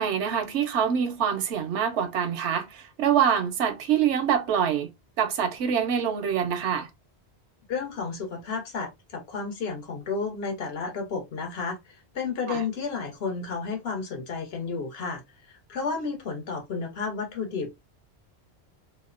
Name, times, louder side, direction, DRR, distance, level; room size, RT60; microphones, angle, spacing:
voice 1, 0.0-4.9 5.2-6.9 12.5-12.6, right 8 dB, 85° right, 0.9 m, -25 dB
voice 2, 7.7-11.8 12.1-15.2 15.5-17.7, left 4 dB, 65° left, 1.0 m, -32 dB
2.7 x 2.0 x 2.4 m
omnidirectional pair, 1.1 m